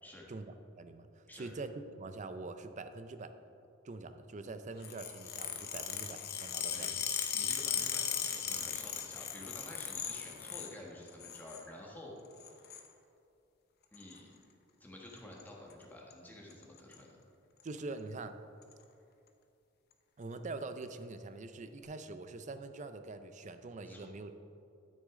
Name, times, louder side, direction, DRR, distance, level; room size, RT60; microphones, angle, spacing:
voice 1, 0.3-1.7 2.0-3.3 3.8-7.1 17.6-18.3 20.2-24.5, right 3 dB, 40° right, 9 dB, 0.5 m, -44 dB
sound 1, 4.8-10.7 11.1-11.6 12.4-12.9 13.9-14.2 15.1-15.4 15.7-15.8 16.1-16.2 16.5-17.0 17.6-17.7 18.6-18.7, left 9 dB, 55° left, 0.8 m, -37 dB
voice 2, 7.3-12.5 13.9-14.3 14.8-17.2 23.8-24.1, left 1 dB, 10° left, -3 dB, 1.5 m, -50 dB
12.5 x 6.5 x 3.7 m, 2.7 s
head